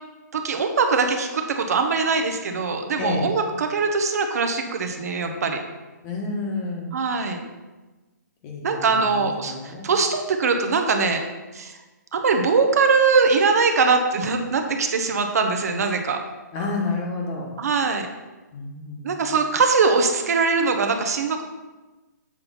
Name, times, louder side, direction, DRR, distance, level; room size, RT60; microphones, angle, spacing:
voice 1, 0.3-5.6 6.9-7.4 8.6-11.2 11.5-11.8 12.1-16.2 17.6-18.1 19.0-21.4, right 4 dB, 55° right, 5 dB, 0.9 m, -22 dB
voice 2, 3.0-3.3 6.0-6.9 8.4-9.9 16.5-17.5 18.5-19.2, left 3 dB, 20° left, 0 dB, 1.2 m, -30 dB
7.5 x 4.3 x 5.6 m, 1.2 s
hypercardioid pair, 165°, 10 cm